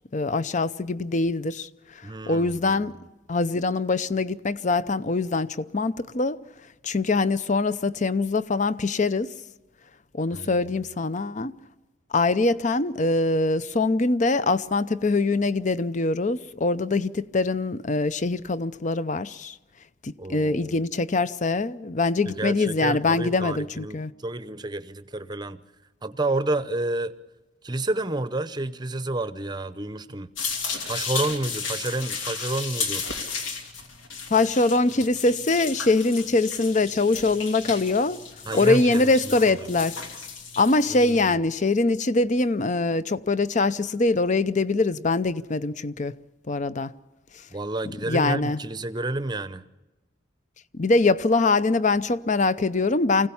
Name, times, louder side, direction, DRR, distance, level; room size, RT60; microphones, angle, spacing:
voice 1, 0.1-1.7 2.3-2.9 3.3-6.4 6.8-9.3 10.1-11.5 12.1-19.6 20.0-24.1 34.3-38.2 38.5-40.0 40.6-46.1 46.5-46.9 48.1-48.6 50.7-53.3, left 3 dB, 40° left, 0.6 m, -23 dB
voice 2, 2.0-2.9 10.3-10.6 20.2-20.8 22.3-25.6 26.0-27.1 27.6-30.3 30.8-33.0 38.4-39.7 40.9-41.2 47.5-49.6, right 2 dB, 20° right, 0.7 m, -30 dB
sound 1, 30.4-41.1, left 5 dB, 80° left, 2.8 m, -34 dB
24.5 x 16.5 x 7.1 m
head